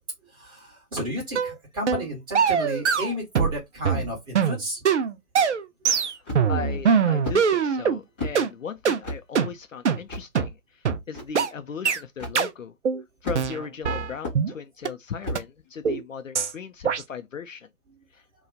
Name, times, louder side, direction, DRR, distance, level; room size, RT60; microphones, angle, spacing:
voice 1, 0.2-4.8, equal, 10° right, 1.3 m, -32 dB
sound 1, 1.4-1.5 1.9-2.1 2.4-3.6 3.8-8.0 8.4-8.5 8.9-9.0 9.4-9.5 9.9-10.0 10.4-10.5 10.9-11.0 11.4-11.5 11.9-12.0 12.4-12.5 12.9-13.0 13.3-14.5 14.9-15.0 15.4-15.5 15.9-16.0 16.4-16.5 16.9-17.0, right 6 dB, 50° right, 0.5 m, -22 dB
voice 2, 6.0-12.7 13.2-17.7 18.1-18.2, left 6 dB, 60° left, 0.6 m, -37 dB
sound 2, 6.2-6.7 7.2-7.4 8.2-8.4 9.0-9.2 10.1-10.3 11.1-11.2 12.2-12.4 13.2-13.7 14.2-14.4 15.2-15.5, left 1 dB, 5° left, 0.6 m, -32 dB
2.9 x 2.3 x 3.7 m
figure-of-eight pair, 135°, 44 cm